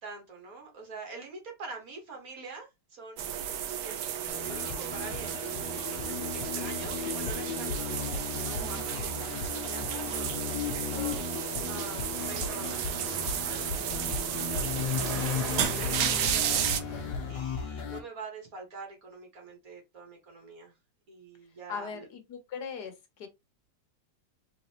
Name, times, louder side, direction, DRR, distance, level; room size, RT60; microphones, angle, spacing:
voice 1, 0.0-3.3 3.8-5.3 6.1-13.0 13.4-20.7 21.1-22.1, right 3 dB, 55° right, 1.9 m, -46 dB
sound 1, 3.2-16.8, right 10 dB, 75° right, 1.2 m, -33 dB
sound 2, 4.3-18.0, left 6 dB, 90° left, 1.5 m, -36 dB
sound 3, 11.8-17.3, right 2 dB, 25° right, 1.1 m, -42 dB
voice 2, 21.7-23.3, left 6 dB, 70° left, 1.5 m, -39 dB
4.0 x 3.7 x 2.9 m
omnidirectional pair, 1.9 m